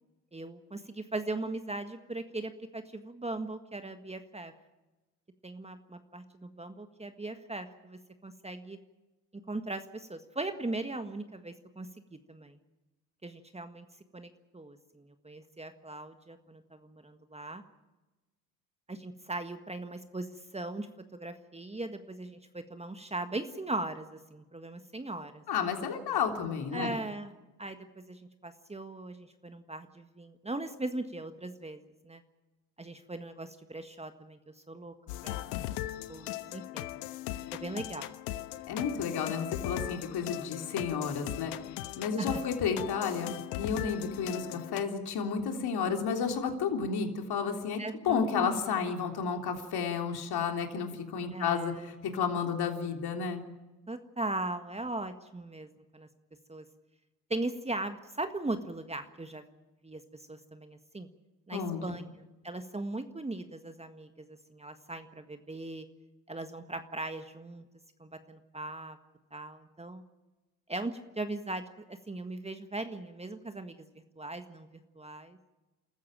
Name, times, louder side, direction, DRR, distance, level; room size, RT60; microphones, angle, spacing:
voice 1, 0.3-4.5 5.4-8.8 9.5-12.6 13.2-13.9 14.1-17.6 18.9-25.4 26.7-32.2 32.8-34.4 34.7-34.9 35.2-35.5 36.1-36.9 37.5-38.1 42.2-42.4 47.8-48.6 51.3-51.9 53.9-56.1 56.5-56.6 57.3-59.4 59.8-61.1 61.5-62.1 62.4-65.8 66.3-67.6 68.0-69.0 69.3-70.0 70.7-71.6 71.9-73.9 74.2-74.7 74.9-75.4, right 2 dB, 15° right, 8 dB, 1.6 m, -39 dB
voice 2, 25.5-27.0 38.7-41.5 42.0-53.4 61.5-62.0, left 6 dB, 50° left, 3 dB, 3.6 m, -32 dB
sound 1, 35.1-44.8, left 15 dB, 70° left, 1.2 m, -39 dB
28.5 x 14.0 x 9.0 m, 1.1 s
hypercardioid pair, 65°, 48 cm